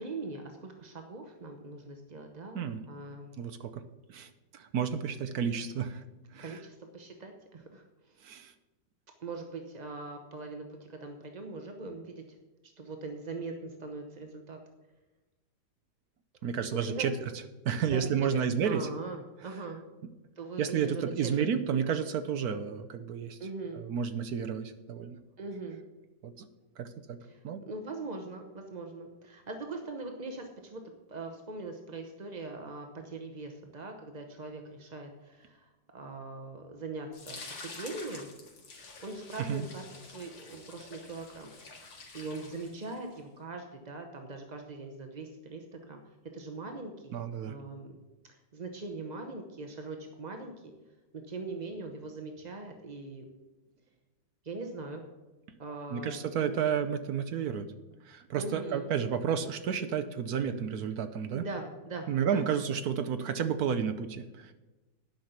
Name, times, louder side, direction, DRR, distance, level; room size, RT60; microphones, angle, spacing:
voice 1, 0.0-3.4 6.4-8.2 9.2-12.2 12.8-14.6 16.7-17.1 17.9-18.1 18.6-19.8 20.4-21.1 21.7-21.8 23.4-23.8 25.4-25.8 27.2-38.3 38.8-41.5 42.1-46.0 46.3-47.2 47.4-48.0 48.3-50.7 51.1-53.3 54.4-55.0 55.6-56.2 56.4-56.6 58.4-58.9 61.3-62.4, right 3 dB, 45° right, 4 dB, 0.5 m, -41 dB
voice 2, 3.4-3.8 4.1-6.0 6.3-6.6 8.2-8.5 16.4-17.1 17.6-18.9 20.6-23.4 23.8-25.2 26.2-26.5 26.8-27.2 27.4-27.6 39.4-39.6 47.1-47.6 55.9-57.7 58.0-61.4 62.1-64.5, right 7 dB, 65° right, 8 dB, 1.0 m, -31 dB
sound 1, 37.1-43.2, left 3 dB, 70° left, 2.5 m, -48 dB
10.5 x 5.8 x 8.1 m, 1.1 s
omnidirectional pair, 2.2 m